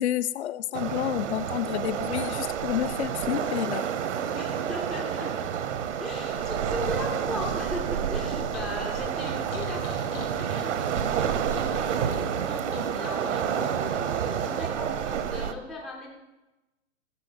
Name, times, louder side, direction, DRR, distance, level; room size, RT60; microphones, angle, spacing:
voice 1, 0.0-3.9, left 12 dB, 65° left, 15 dB, 0.5 m, -29 dB
Waves surf, 0.7-15.5, right 8 dB, 75° right, 1.0 m, -29 dB
voice 2, 4.3-5.3 6.0-10.8 11.1-16.1, left 1 dB, ahead, -1 dB, 0.3 m, -38 dB
sound 1, 8.5-13.8, left 4 dB, 90° left, 3.6 m, -42 dB
14.5 x 6.2 x 6.1 m, 1.1 s
hypercardioid pair, 145°, 37 cm